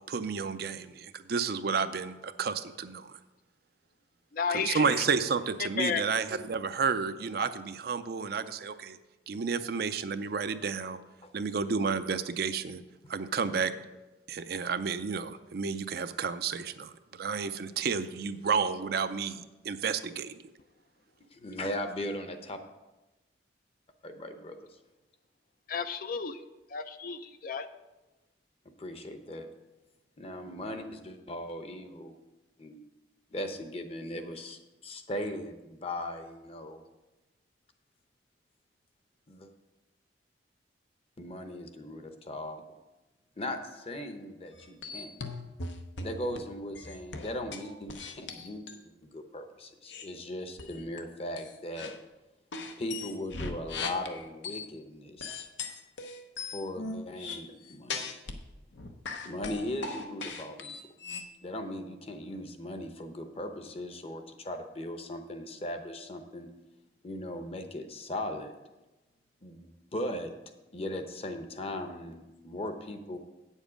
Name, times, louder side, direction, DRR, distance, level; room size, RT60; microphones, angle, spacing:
voice 1, 0.0-3.2 4.5-9.0 9.3-11.0 11.3-12.8 13.1-13.7 14.3-20.4, right 5 dB, 55° right, 10 dB, 0.5 m, -31 dB
voice 2, 4.3-5.0 5.8-6.0 25.7-26.4 26.7-27.7, left 6 dB, 50° left, 10 dB, 0.4 m, -32 dB
voice 3, 21.3-22.6 24.0-24.6 28.6-29.5 30.2-32.1 32.6-32.8 33.3-36.8 39.3-39.5 41.2-42.6 43.4-45.1 46.0-48.6 49.0-51.9 52.8-55.5 56.5-58.1 59.2-61.0 61.4-66.5 67.0-68.5 69.4-70.3 70.7-73.2, left 1 dB, 35° left, 7 dB, 0.8 m, -38 dB
sound 1, 44.5-46.4 46.7-48.8 49.9-50.1 50.6-51.0 51.4-52.0 52.5-54.7 55.2-58.4 58.7-61.3, left 4 dB, 80° left, 0.9 m, -39 dB
9.1 x 7.3 x 5.1 m, 1.1 s
head